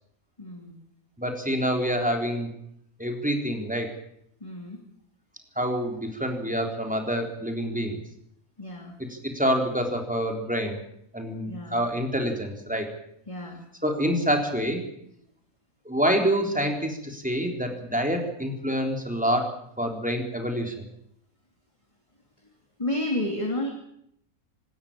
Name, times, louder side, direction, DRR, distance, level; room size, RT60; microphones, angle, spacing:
voice 1, 0.4-0.8 4.4-4.8 8.6-9.0 11.5-11.9 13.3-13.6 22.8-23.7, left 1 dB, 20° left, 2 dB, 2.9 m, -31 dB
voice 2, 1.2-2.5 3.0-3.9 5.6-8.0 9.1-10.8 11.1-12.9 13.8-14.8 15.9-19.5 19.8-20.7, equal, 5° right, 2 dB, 3.8 m, -27 dB
26.5 x 13.5 x 8.9 m, 0.73 s
omnidirectional pair, 1.5 m